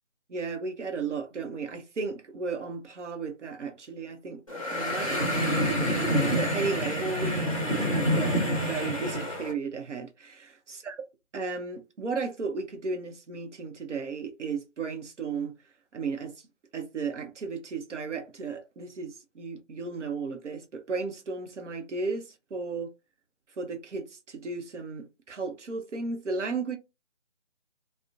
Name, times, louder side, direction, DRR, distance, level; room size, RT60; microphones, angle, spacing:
voice 1, 0.3-4.4 4.7-11.0 11.3-15.5 15.9-16.4 16.7-22.9 23.6-26.8, right 4 dB, 70° right, 0.6 m, -34 dB
sound 1, 4.5-9.5, equal, 30° left, 0.7 m, -27 dB
2.6 x 2.0 x 2.4 m
figure-of-eight pair, 175°, 37 cm